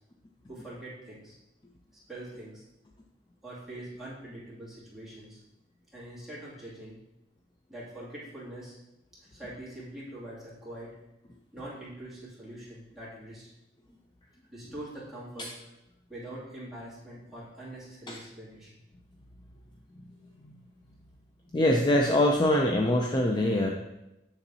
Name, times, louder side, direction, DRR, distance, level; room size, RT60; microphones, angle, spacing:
voice 1, 0.5-1.4 2.1-2.6 3.4-5.4 5.9-7.0 7.7-8.8 9.3-10.9 11.5-13.5 14.5-15.5 16.1-18.8, right 1 dB, ahead, -10 dB, 2.5 m, -43 dB
voice 2, 21.5-23.7, left 1 dB, 25° left, 1 dB, 0.4 m, -24 dB
7.0 x 6.8 x 2.7 m, 0.93 s
head